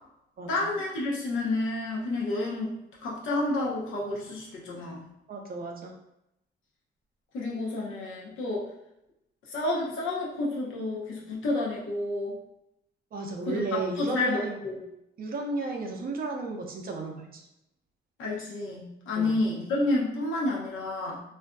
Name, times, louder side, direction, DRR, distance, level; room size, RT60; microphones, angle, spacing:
voice 1, 0.5-5.1 7.3-8.7 9.5-12.4 13.5-14.8 18.2-21.2, left 2 dB, 80° left, -4 dB, 0.8 m, -30 dB
voice 2, 5.3-5.9 13.1-14.6 15.2-17.4 19.2-19.4, right 3 dB, 50° right, 2 dB, 0.5 m, -33 dB
2.5 x 2.4 x 2.2 m, 0.85 s
cardioid pair, 90°, 20 cm